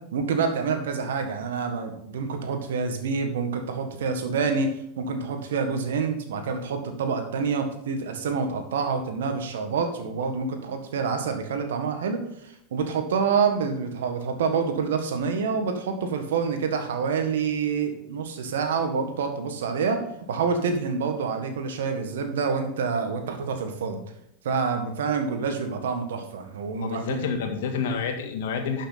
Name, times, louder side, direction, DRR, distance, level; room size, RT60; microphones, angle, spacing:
voice 1, 0.1-4.7 5.0-20.0 20.3-24.0 24.4-27.2, right 5 dB, 75° right, 6 dB, 1.7 m, -27 dB
voice 2, 26.7-28.9, left 6 dB, 70° left, 4 dB, 1.8 m, -29 dB
11.5 x 6.4 x 4.3 m, 0.73 s
hypercardioid pair, 90°, 0 cm